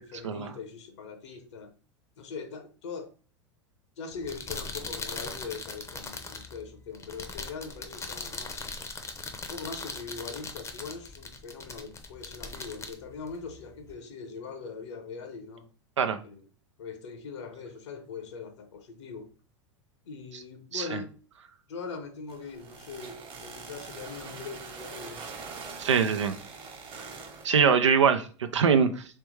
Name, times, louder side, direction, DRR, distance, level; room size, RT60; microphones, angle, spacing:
voice 1, 0.0-1.7 2.2-3.1 4.0-8.7 9.5-15.7 16.2-16.4 16.8-19.3 20.0-21.1 21.7-25.3, left 5 dB, 75° left, 1.0 m, -41 dB
sound 1, 4.1-13.9, left 3 dB, 20° left, 0.6 m, -40 dB
sound 2, 22.3-27.5, right 4 dB, 35° right, 1.1 m, -43 dB
voice 2, 25.8-26.4 27.0-27.1 27.4-29.2, right 6 dB, 90° right, 0.5 m, -23 dB
3.3 x 3.3 x 3.1 m
hypercardioid pair, 95°, 15 cm